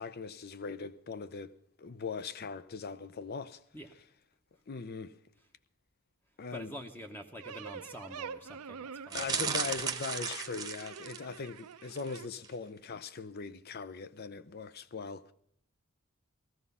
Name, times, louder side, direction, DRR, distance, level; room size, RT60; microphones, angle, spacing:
voice 1, 0.0-1.5 1.8-3.6 4.7-5.2 6.4-6.7 9.1-15.3, left 5 dB, 45° left, 0.6 m, -40 dB
voice 2, 6.5-9.6, equal, 10° left, 0.9 m, -46 dB
sound 1, 7.4-12.3, right 6 dB, 90° right, 0.6 m, -46 dB
sound 2, 9.1-11.4 11.9-12.2 12.4-12.5, right 6 dB, 15° right, 1.0 m, -35 dB
17.0 x 14.0 x 5.5 m
head